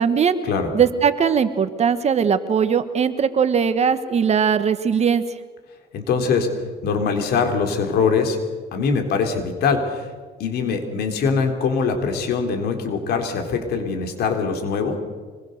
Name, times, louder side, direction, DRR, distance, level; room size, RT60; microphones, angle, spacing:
voice 1, 0.0-0.4 0.7-5.2, right 7 dB, 40° right, 11 dB, 1.5 m, -19 dB
voice 2, 5.9-6.5 6.8-8.4 8.7-10.1 10.4-15.0, left 5 dB, 70° left, 4 dB, 3.8 m, -22 dB
25.5 x 21.5 x 6.8 m, 1.5 s
cardioid pair, 110°, 17 cm